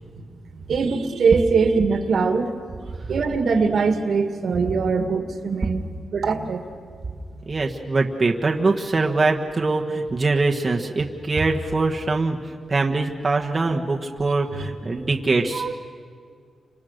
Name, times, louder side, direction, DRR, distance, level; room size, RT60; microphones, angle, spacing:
voice 1, 0.7-2.5 3.1-6.6 14.5-14.7 15.5-15.8, right 5 dB, 70° right, 7 dB, 2.0 m, -22 dB
voice 2, 7.5-15.6, right 3 dB, 35° right, 0 dB, 1.4 m, -23 dB
30.0 x 26.0 x 6.6 m, 2.1 s
wide cardioid pair, 110°, 0 cm